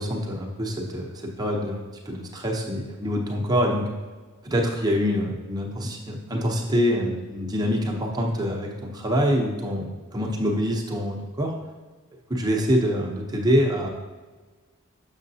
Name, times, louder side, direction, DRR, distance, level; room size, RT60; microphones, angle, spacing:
voice 1, 0.0-3.8 4.4-11.5 12.3-13.9, equal, 15° right, 0 dB, 0.7 m, -25 dB
6.9 x 6.4 x 2.7 m, 1.3 s
head